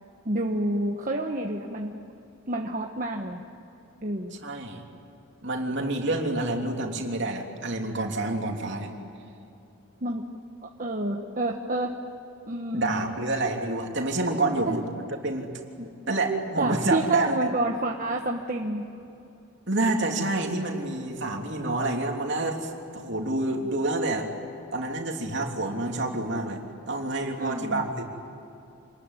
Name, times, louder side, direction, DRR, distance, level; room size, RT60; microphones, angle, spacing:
voice 1, 0.2-2.0 2.5-3.4 4.0-4.4 10.0-10.2 10.6-11.9 12.5-13.2 14.7-14.8 15.8-15.9 16.6-18.9 27.4-27.9, right 1 dB, 40° right, 1 dB, 1.3 m, -29 dB
voice 2, 4.4-4.8 5.4-8.9 12.7-14.8 15.2-15.5 16.1-17.5 19.7-24.3 24.7-26.6 26.9-28.0, right 2 dB, 55° right, 2 dB, 3.2 m, -28 dB
27.0 x 20.5 x 9.8 m, 2.8 s
head